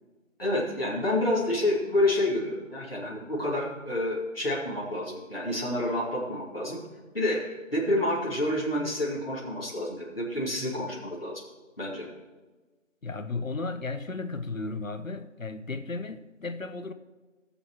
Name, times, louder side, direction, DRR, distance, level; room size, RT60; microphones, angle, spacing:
voice 1, 0.4-6.8 7.1-11.4 11.8-12.1, left 1 dB, 45° left, -5 dB, 2.4 m, -28 dB
voice 2, 13.0-16.9, left 3 dB, 80° left, 11 dB, 1.0 m, -34 dB
18.5 x 7.1 x 3.0 m, 1.2 s
figure-of-eight pair, 180°, 39 cm